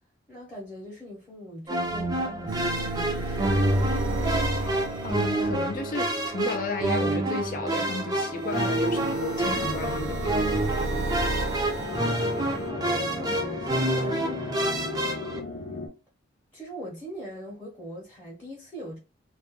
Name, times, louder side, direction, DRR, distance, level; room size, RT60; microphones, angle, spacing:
voice 1, 0.3-3.6 3.9-4.2 12.1-14.4 15.1-15.8 16.5-19.0, equal, 10° left, 0.7 m, -42 dB
sound 1, 1.7-15.4, right 1 dB, 20° right, 0.4 m, -28 dB
sound 2, 2.5-6.0 8.3-12.7, right 2 dB, 75° right, 0.4 m, -32 dB
voice 2, 4.6-10.4, left 4 dB, 45° left, 0.4 m, -34 dB
sound 3, 9.4-15.9, left 2 dB, 85° left, 0.7 m, -36 dB
2.3 x 2.1 x 2.8 m
head